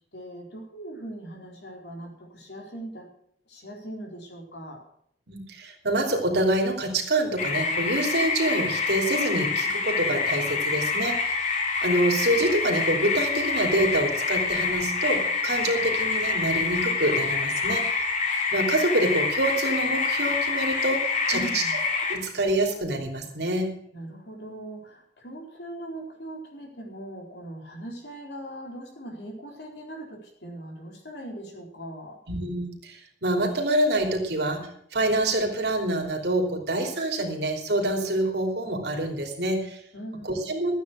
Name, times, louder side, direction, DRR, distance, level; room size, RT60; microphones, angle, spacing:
voice 1, 0.1-3.1 3.5-4.8 21.3-21.7 23.9-32.2 39.9-40.5, right 1 dB, 70° left, 1 dB, 4.2 m, -40 dB
voice 2, 5.3-11.3 11.8-18.0 18.5-21.0 21.3-21.6 22.1-23.7 32.3-39.8 40.5-40.8, right 1 dB, 70° right, 2 dB, 3.2 m, -26 dB
sound 1, 7.4-22.2, left 4 dB, 45° left, 2.8 m, -26 dB
13.5 x 9.5 x 6.3 m, 0.68 s
head